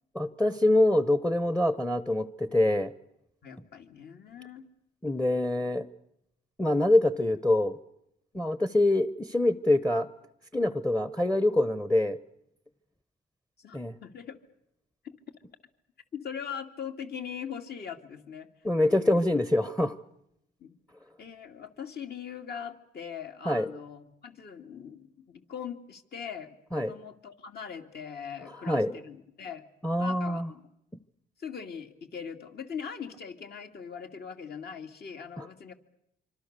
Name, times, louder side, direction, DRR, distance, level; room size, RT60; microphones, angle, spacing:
voice 1, 0.1-2.9 5.0-5.9 6.6-7.7 8.3-10.1 10.5-12.2 13.7-14.0 18.6-19.9 23.5-23.7 26.7-27.0 28.6-28.9 29.8-30.5 35.4-35.5, left 1 dB, 5° left, 14 dB, 0.9 m, -25 dB
voice 2, 3.4-4.7 13.6-14.4 15.0-15.1 16.1-18.5 18.8-19.2 20.6-20.8 21.2-29.6 30.0-30.7 31.4-35.7, left 7 dB, 55° left, 5 dB, 2.6 m, -41 dB
25.5 x 25.5 x 6.8 m, 0.81 s
cardioid pair, 90°, 20 cm